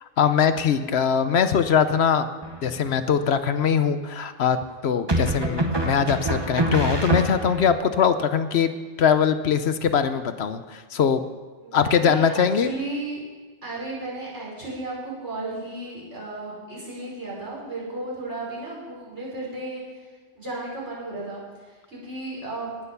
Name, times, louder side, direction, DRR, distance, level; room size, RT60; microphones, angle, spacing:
voice 1, 0.0-2.3 2.6-4.6 4.8-8.7 9.0-11.2 11.7-12.7, left 7 dB, 65° left, 10 dB, 1.0 m, -22 dB
sound 1, 2.4-3.0 5.1-7.8, right 1 dB, 20° right, 1.2 m, -25 dB
voice 2, 11.6-13.2 13.6-19.8 20.3-21.4 21.7-22.7, right 2 dB, 70° right, -7 dB, 5.8 m, -34 dB
18.5 x 6.9 x 6.8 m, 1.4 s
omnidirectional pair, 1.2 m